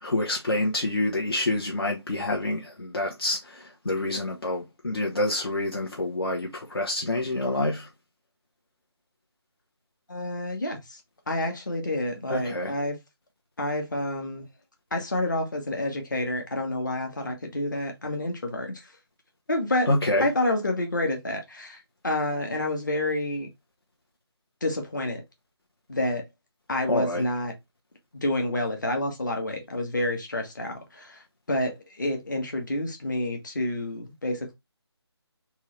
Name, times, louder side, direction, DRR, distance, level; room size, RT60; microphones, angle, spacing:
voice 1, 0.0-7.9 12.3-12.7 19.9-20.3 26.9-27.2, left 1 dB, 60° left, 1.1 m, -27 dB
voice 2, 10.1-11.0 11.3-13.0 13.6-14.4 14.9-18.9 19.5-19.9 20.2-23.5 24.6-25.2 25.9-26.2 26.7-27.5 28.2-34.5, left 1 dB, 45° left, 1.4 m, -29 dB
3.6 x 3.0 x 3.1 m
figure-of-eight pair, 175°, 14 cm